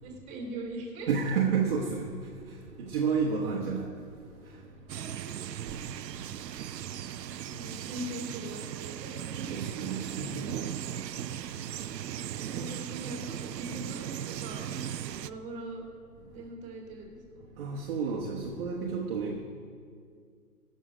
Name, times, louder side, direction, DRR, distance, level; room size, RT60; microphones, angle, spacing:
voice 1, 0.0-1.1 4.9-5.5 7.5-9.6 12.5-14.7 15.0-15.8 16.3-17.4, right 1 dB, 15° right, 2.3 m, -41 dB
voice 2, 1.1-2.1 2.8-3.9 9.5-10.5 17.6-19.4, right 5 dB, 35° right, 1.1 m, -30 dB
sound 1, 4.9-15.3, right 10 dB, 85° right, 0.6 m, -38 dB
16.0 x 6.4 x 5.0 m
hypercardioid pair, 140°, 48 cm